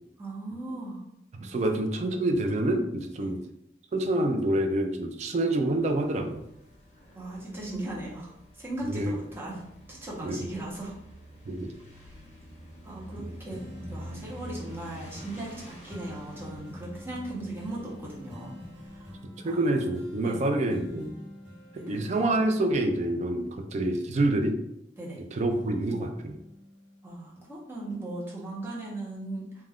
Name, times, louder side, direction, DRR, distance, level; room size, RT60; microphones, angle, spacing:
voice 1, 0.2-1.0 1.6-1.8 3.2-3.3 7.1-8.3 8.6-11.0 12.0-12.1 12.8-13.6 13.9-19.1 19.4-19.7 20.2-20.5 21.8-22.0 25.0-25.2 27.0-29.6, right 2 dB, 15° right, -5 dB, 0.7 m, -38 dB
voice 2, 1.3-3.4 3.9-6.4 8.8-9.2 10.2-10.4 11.5-11.7 19.4-21.1 21.7-24.6 25.3-26.4, right 1 dB, 40° right, 5 dB, 0.3 m, -27 dB
sound 1, 5.8-19.2, equal, 35° left, 0.7 m, -47 dB
sound 2, 13.5-25.1 25.5-27.4 27.9-28.0, left 1 dB, 85° right, 1.0 m, -47 dB
2.3 x 2.2 x 3.4 m, 0.81 s
head